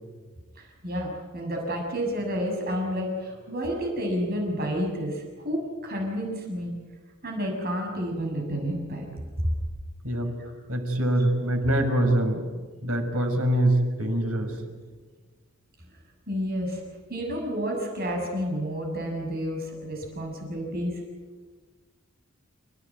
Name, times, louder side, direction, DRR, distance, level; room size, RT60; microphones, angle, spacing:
voice 1, 0.6-6.7 7.2-9.1 9.4-9.5 10.4-10.5 16.3-16.8 17.1-21.0, equal, 45° right, 0 dB, 6.7 m, -30 dB
voice 2, 10.7-12.4 12.8-14.6, right 1 dB, 75° right, 4 dB, 6.0 m, -24 dB
30.0 x 18.0 x 9.6 m, 1.4 s
head